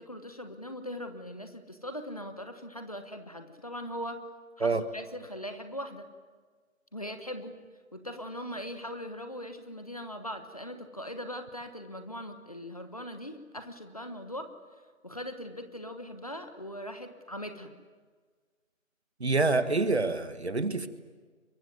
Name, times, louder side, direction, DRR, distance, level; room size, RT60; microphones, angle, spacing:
voice 1, 0.0-4.2 4.6-6.1 6.9-7.6 7.9-14.5 15.0-17.7, equal, 25° left, 8 dB, 1.2 m, -40 dB
voice 2, 19.2-20.9, right 3 dB, 50° right, 10 dB, 1.8 m, -26 dB
23.5 x 23.5 x 9.6 m, 1.5 s
figure-of-eight pair, 170°, 41 cm